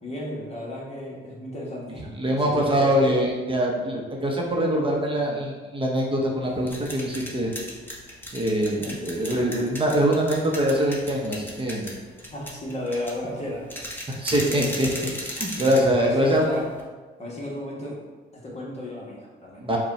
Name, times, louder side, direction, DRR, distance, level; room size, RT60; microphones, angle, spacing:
voice 1, 0.0-2.1 2.4-3.1 8.8-9.0 12.3-13.7 14.4-15.0 15.5-15.7 16.0-16.7 17.2-18.0 18.3-19.6, left 1 dB, 35° left, -4 dB, 1.2 m, -33 dB
voice 2, 2.2-7.5 8.3-11.9 14.1-14.9 15.2-16.5 19.6-19.8, equal, 25° right, -1 dB, 0.8 m, -23 dB
sound 1, 6.4-16.8, equal, 10° left, 1.0 m, -37 dB
5.2 x 2.3 x 4.1 m, 1.3 s
cardioid pair, 90°, 20 cm